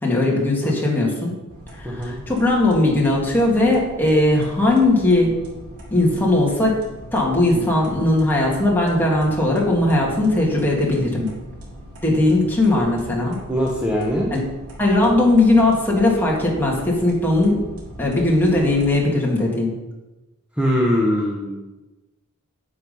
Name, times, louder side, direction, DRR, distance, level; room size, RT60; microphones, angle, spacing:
voice 1, 0.0-1.3 1.8-5.3 5.9-6.8 7.1-11.3 12.0-13.4 14.3-14.4 14.8-17.6 18.0-19.7, left 2 dB, 10° left, -3 dB, 2.6 m, -18 dB
sound 1, 1.5-18.9, equal, 85° right, 3.2 m, -40 dB
voice 2, 1.8-2.2 13.5-14.3 20.6-21.7, equal, 5° right, -3 dB, 1.3 m, -21 dB
9.7 x 7.7 x 5.6 m, 1.1 s
head